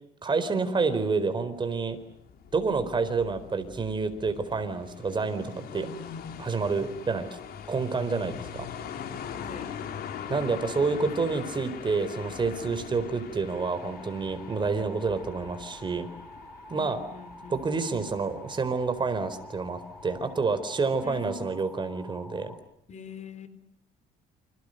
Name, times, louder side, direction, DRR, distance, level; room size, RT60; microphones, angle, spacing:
voice 1, 0.2-2.0 2.5-5.9 6.4-7.3 7.7-8.7 10.3-16.1 16.7-17.0 17.5-22.5, right 4 dB, 30° right, 10 dB, 4.3 m, -28 dB
sound 1, 1.6-21.4, left 8 dB, 65° left, 4.6 m, -42 dB
voice 2, 9.4-9.8 14.7-14.9 16.7-17.6 21.0-21.6 22.9-23.5, left 4 dB, 45° left, 13 dB, 4.0 m, -43 dB
sound 2, 13.6-22.6, equal, ahead, 6.7 m, -48 dB
29.5 x 27.5 x 6.7 m, 0.75 s
cardioid pair, 110°, 17 cm